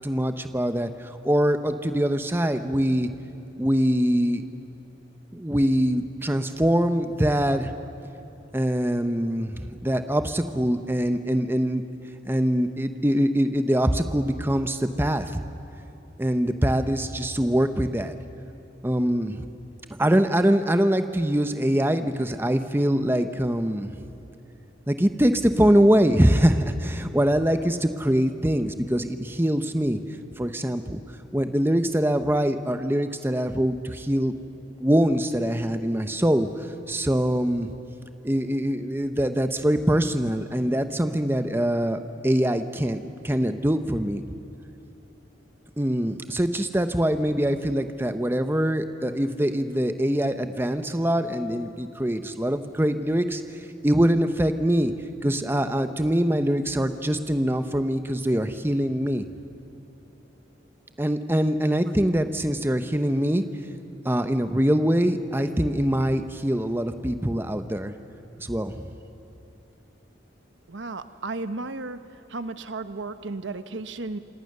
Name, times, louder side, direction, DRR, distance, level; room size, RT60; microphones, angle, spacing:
voice 1, 0.0-3.1 3.6-4.4 5.3-7.7 8.5-11.8 12.3-15.4 16.2-18.1 18.8-19.4 20.0-23.9 24.9-30.0 30.4-31.0 31.3-34.3 34.8-36.5 36.9-37.7 38.2-44.2 45.8-54.9 55.2-59.3 61.0-63.5 64.0-67.9 68.4-68.9, equal, 10° right, 8 dB, 0.9 m, -23 dB
voice 2, 70.7-72.0 72.3-74.2, right 3 dB, 80° right, 11 dB, 1.0 m, -34 dB
27.5 x 27.0 x 6.7 m, 3.0 s
head